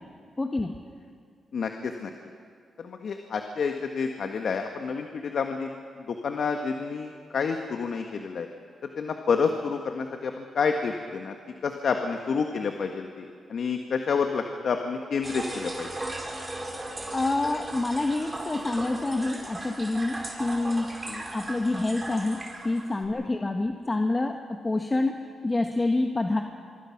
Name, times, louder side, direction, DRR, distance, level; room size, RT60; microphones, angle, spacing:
voice 1, 0.4-0.8 17.1-21.0 21.3-25.2 25.4-26.4, left 2 dB, 25° left, 4 dB, 1.6 m, -27 dB
voice 2, 1.5-2.1 2.8-5.7 6.1-8.5 9.0-11.3 11.6-15.9 21.1-21.2 23.1-23.3, left 5 dB, 65° left, 5 dB, 1.5 m, -29 dB
sound 1, 15.2-23.0, right 1 dB, 20° right, 5.3 m, -37 dB
24.5 x 24.5 x 6.0 m, 2.2 s
cardioid pair, 65°, 0 cm